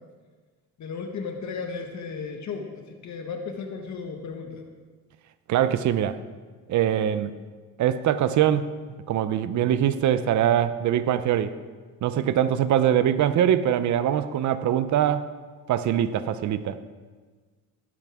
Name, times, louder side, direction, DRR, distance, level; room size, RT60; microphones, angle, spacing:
voice 1, 0.8-4.6, left 5 dB, 55° left, 3 dB, 1.6 m, -35 dB
voice 2, 5.5-6.2 6.7-7.4 7.8-8.7 9.1-11.5 12.0-15.3 15.7-16.8, right 10 dB, 55° right, 12 dB, 0.7 m, -23 dB
18.5 x 11.0 x 3.6 m, 1.4 s
cardioid pair, 100°, 34 cm